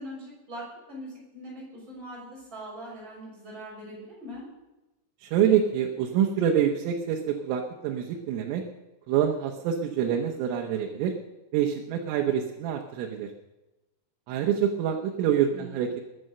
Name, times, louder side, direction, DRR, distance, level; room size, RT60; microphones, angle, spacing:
voice 1, 0.0-4.4 15.5-15.9, equal, 25° right, -4 dB, 6.5 m, -41 dB
voice 2, 5.2-8.7 9.1-11.2 11.5-13.3 14.3-16.0, right 9 dB, 90° right, 2 dB, 3.7 m, -26 dB
20.5 x 9.6 x 6.6 m, 1.0 s
omnidirectional pair, 5.6 m